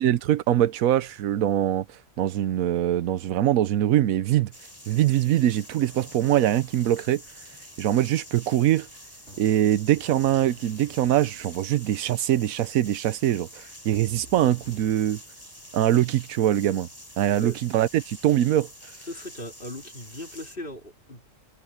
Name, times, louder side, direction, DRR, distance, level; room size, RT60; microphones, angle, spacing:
voice 1, 0.0-1.8 2.2-4.5 4.9-7.2 7.8-8.9 9.4-15.2 15.7-16.9 17.2-18.7, right 12 dB, 90° right, 1.1 m, -23 dB
sound 1, 4.5-20.6, left 1 dB, 15° left, 6.7 m, -46 dB
sound 2, 9.3-15.0, right 1 dB, 55° right, 4.2 m, -52 dB
voice 2, 19.1-21.3, equal, 40° left, 4.0 m, -38 dB
omnidirectional pair, 1.4 m